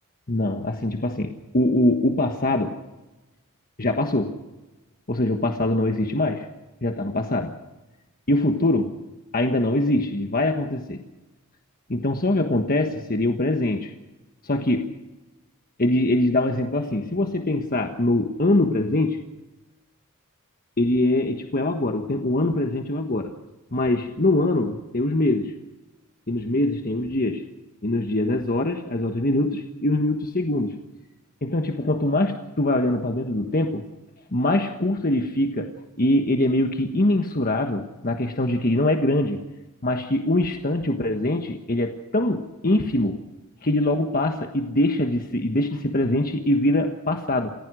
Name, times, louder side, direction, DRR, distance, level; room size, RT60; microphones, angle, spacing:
voice 1, 0.3-2.8 3.8-4.4 5.1-6.5 6.8-7.5 8.3-8.9 9.3-11.0 11.9-13.9 14.4-14.9 15.8-19.2 20.8-23.3 23.7-25.5 26.3-27.5 27.8-30.8 31.4-33.8 34.3-35.7 36.0-39.4 39.8-43.2 43.6-47.5, left 1 dB, 40° left, 4 dB, 1.4 m, -23 dB
28.5 x 16.5 x 6.4 m, 1.1 s
head